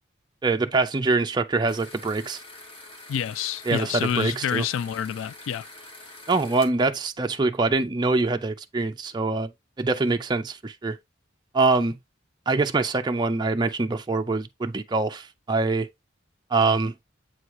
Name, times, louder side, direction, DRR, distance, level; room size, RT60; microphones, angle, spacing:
voice 1, 0.4-2.4 3.7-4.6 6.3-9.5 9.8-11.0 11.5-12.0 12.5-15.9 16.5-16.9, right 3 dB, 20° right, 0.4 m, -24 dB
sound 1, 1.7-6.7, left 2 dB, 30° left, 1.3 m, -45 dB
voice 2, 3.1-5.7, left 9 dB, 90° left, 0.3 m, -28 dB
7.8 x 2.8 x 4.7 m
head